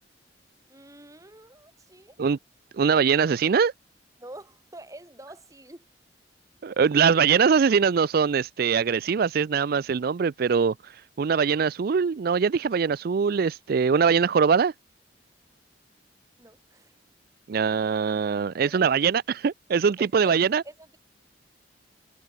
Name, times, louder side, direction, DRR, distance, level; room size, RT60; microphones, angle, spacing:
voice 1, 0.7-2.2 4.2-5.9 16.4-16.9 18.7-19.0 20.0-20.4 20.6-21.0, right 1 dB, 20° right, 3.8 m, -46 dB
voice 2, 2.8-3.7 6.6-14.7 17.5-20.6, right 6 dB, 55° right, 0.4 m, -22 dB
head